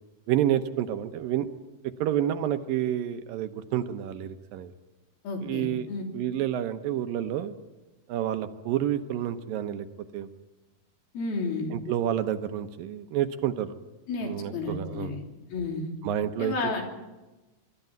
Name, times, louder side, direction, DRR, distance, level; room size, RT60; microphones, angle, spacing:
voice 1, 0.3-1.5 2.0-4.7 5.4-5.9 6.1-7.6 8.1-9.9 10.1-10.3 11.7-13.7 14.2-15.1 16.0-16.7, right 11 dB, 75° right, 9 dB, 2.5 m, -29 dB
voice 2, 5.2-6.0 11.1-11.7 14.1-15.2 15.5-15.9 16.4-16.8, left 3 dB, 75° left, 1 dB, 5.0 m, -32 dB
24.5 x 13.5 x 9.2 m, 1.1 s
omnidirectional pair, 4.4 m